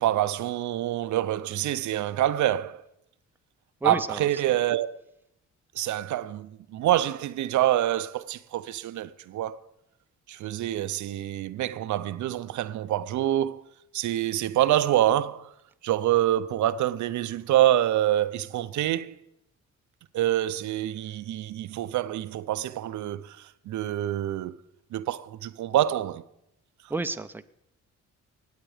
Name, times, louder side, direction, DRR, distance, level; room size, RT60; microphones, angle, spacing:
voice 1, 0.0-2.8 3.8-4.9 5.8-9.6 10.3-13.6 13.9-15.5 15.8-19.1 20.1-24.6 24.9-26.2, right 12 dB, 70° right, 0.6 m, -26 dB
voice 2, 3.8-4.6 26.9-27.4, right 3 dB, 5° right, 0.7 m, -32 dB
19.0 x 8.2 x 4.9 m
cardioid pair, 90°, 30 cm